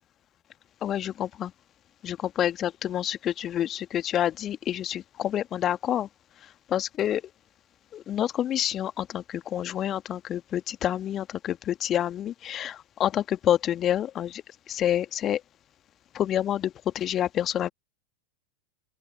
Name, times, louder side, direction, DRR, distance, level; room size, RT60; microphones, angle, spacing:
voice 1, 0.8-1.5 2.0-6.1 6.7-7.2 7.9-14.4 14.7-15.4 16.1-17.7, left 11 dB, 30° left, 1.5 m, -28 dB
open air
figure-of-eight pair, 90°, 0 cm